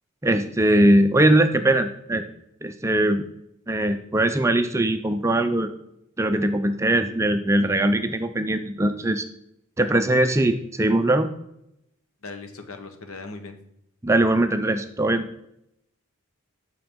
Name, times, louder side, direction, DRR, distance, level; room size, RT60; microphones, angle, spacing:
voice 1, 0.2-2.2 2.6-3.2 3.7-5.7 6.2-9.2 9.8-11.3 14.0-15.4, right 1 dB, 15° right, 8 dB, 0.4 m, -21 dB
voice 2, 12.2-13.6, left 3 dB, 80° left, 7 dB, 1.0 m, -38 dB
7.7 x 6.1 x 3.6 m, 0.78 s
head